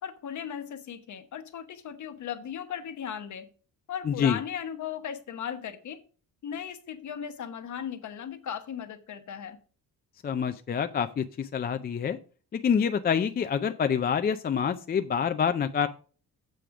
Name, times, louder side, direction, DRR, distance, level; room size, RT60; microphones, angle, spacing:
voice 1, 0.0-3.5 3.9-6.0 6.4-9.6, left 8 dB, 50° left, 1.1 m, -37 dB
voice 2, 4.0-4.4 10.2-12.2 12.5-15.9, left 7 dB, 25° left, 0.4 m, -27 dB
7.7 x 5.0 x 6.9 m
cardioid pair, 170°, 37 cm